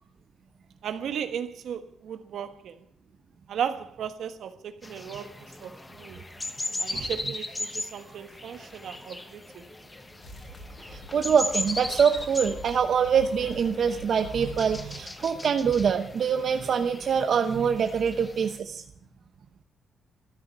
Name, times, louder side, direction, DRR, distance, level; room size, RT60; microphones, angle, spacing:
voice 1, 0.8-2.8 3.5-6.2 6.8-9.6, right 8 dB, 70° right, 1.4 m, -35 dB
sound 1, 4.8-18.6, left 2 dB, 15° left, 1.1 m, -38 dB
sound 2, 10.2-15.0, left 1 dB, 55° left, 5.0 m, -45 dB
voice 2, 10.9-18.8, right 7 dB, 50° right, 0.9 m, -24 dB
13.5 x 9.5 x 9.5 m
cardioid pair, 145°, 0 cm